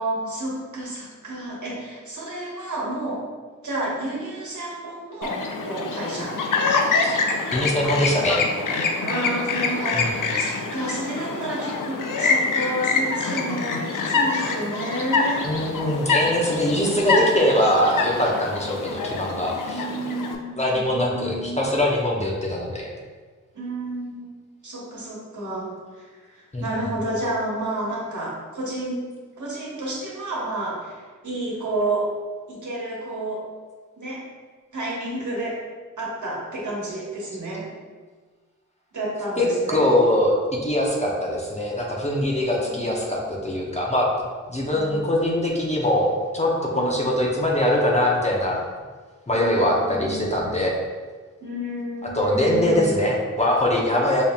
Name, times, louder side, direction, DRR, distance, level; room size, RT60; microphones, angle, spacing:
voice 1, 0.0-3.2 3.6-6.3 9.0-15.4 19.7-21.6 23.5-24.3 24.6-29.0 29.4-32.1 32.5-33.4 34.0-34.2 34.7-35.6 36.0-37.7 38.9-39.8 42.6-43.0 44.7-45.1 46.7-47.2 49.3-50.3 51.4-53.0, right 1 dB, 70° right, -5 dB, 1.2 m, -30 dB
Chirp tweet, 5.2-20.4, left 4 dB, 85° left, 0.5 m, -25 dB
voice 2, 7.5-8.4 9.9-10.1 15.4-19.8 20.6-22.9 26.5-26.9 39.4-40.3 40.6-44.1 44.5-48.6 49.3-50.7 52.1-54.2, left 1 dB, 20° left, -3 dB, 0.6 m, -22 dB
5.1 x 2.7 x 2.4 m, 1.4 s
wide cardioid pair, 90°, 31 cm